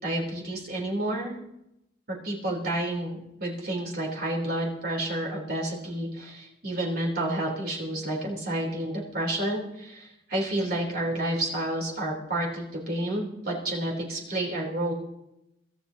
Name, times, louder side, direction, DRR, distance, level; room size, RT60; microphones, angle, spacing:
voice 1, 0.0-1.3 2.1-14.9, right 1 dB, 50° right, -2 dB, 4.1 m, -30 dB
23.5 x 13.5 x 3.0 m, 0.86 s
head